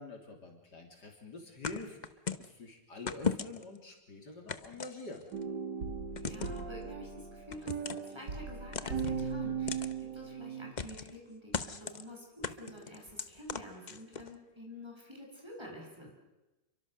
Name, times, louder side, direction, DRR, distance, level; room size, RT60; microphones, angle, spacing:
voice 1, 0.0-2.0 2.4-5.3, left 2 dB, 70° left, 2 dB, 3.9 m, -46 dB
sound 1, 1.6-2.5 3.1-3.8 4.5-5.4 6.2-6.6 7.5-8.1 8.7-9.2 9.7-9.9 10.8-11.2 11.5-12.0 12.4-14.3, left 5 dB, 35° left, 0.8 m, -37 dB
sound 2, 5.3-10.7, right 6 dB, 80° right, 2.8 m, -38 dB
voice 2, 6.1-16.1, equal, 15° right, -1 dB, 6.8 m, -49 dB
29.0 x 23.5 x 6.7 m, 1.0 s
omnidirectional pair, 1.9 m